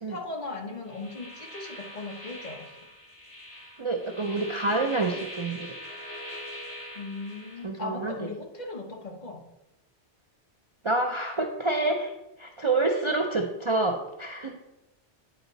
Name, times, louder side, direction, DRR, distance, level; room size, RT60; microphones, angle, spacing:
voice 1, 0.1-2.8 6.9-9.4, left 3 dB, 40° left, 1 dB, 1.1 m, -38 dB
sound 1, 0.9-7.6, left 1 dB, 70° left, 2.1 m, -42 dB
voice 2, 3.8-5.8 7.6-8.3 10.8-12.1 12.4-14.6, right 2 dB, 35° right, 2 dB, 0.5 m, -27 dB
9.2 x 4.9 x 4.0 m, 0.91 s
omnidirectional pair, 1.2 m